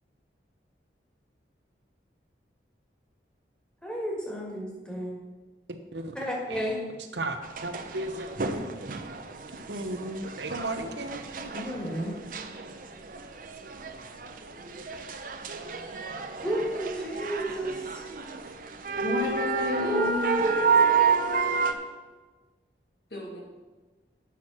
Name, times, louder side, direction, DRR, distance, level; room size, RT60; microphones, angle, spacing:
voice 1, 3.8-5.1 6.2-6.8 11.3-12.1 16.4-18.1 19.8-21.0, equal, 5° left, -3 dB, 1.8 m, -32 dB
voice 2, 5.7-6.2 6.5-6.6 7.1-8.3 9.7-11.2, right 2 dB, 80° right, 6 dB, 0.9 m, -34 dB
sound 1, 7.4-21.7, right 5 dB, 50° right, 0.7 m, -30 dB
voice 3, 19.0-20.4 23.1-23.4, left 1 dB, 65° left, -2 dB, 2.2 m, -32 dB
8.5 x 5.9 x 6.1 m, 1.3 s
head